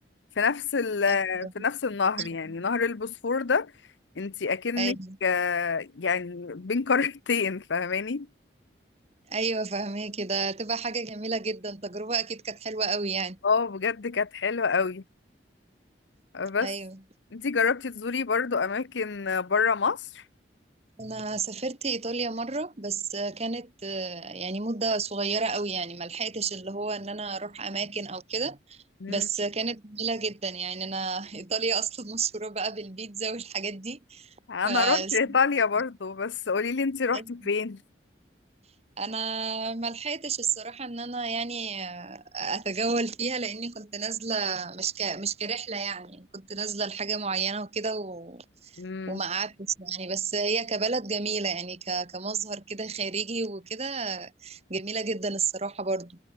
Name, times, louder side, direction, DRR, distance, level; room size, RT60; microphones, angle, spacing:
voice 1, 0.4-3.7 4.2-8.3 13.4-15.0 16.3-16.7 17.3-20.2 29.0-29.3 34.5-37.8 48.8-49.2, left 5 dB, 90° left, 0.7 m, -27 dB
voice 2, 4.8-5.2 9.3-13.4 16.6-17.0 21.0-28.8 29.1-34.3 34.7-35.4 37.1-37.5 39.0-48.4 48.7-48.8 49.1-56.2, right 4 dB, 35° right, 1.9 m, -31 dB
head